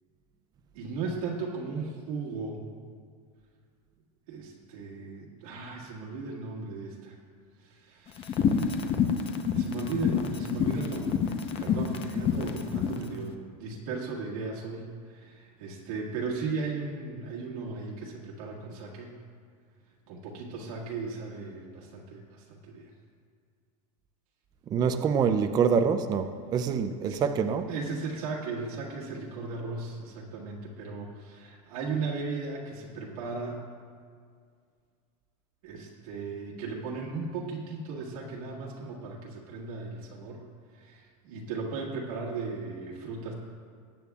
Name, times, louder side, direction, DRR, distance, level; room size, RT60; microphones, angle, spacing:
voice 1, 0.7-2.7 4.3-7.2 7.6-8.8 9.5-19.2 20.1-22.9 27.0-27.2 27.7-33.6 35.6-40.4 40.7-43.3, right 4 dB, 80° right, 1.8 m, -36 dB
sound 1, 8.2-13.0, left 7 dB, 30° left, 0.7 m, -27 dB
voice 2, 24.7-27.7, right 6 dB, 20° right, 0.4 m, -25 dB
19.0 x 8.6 x 2.4 m
supercardioid pair, 145°, 18 cm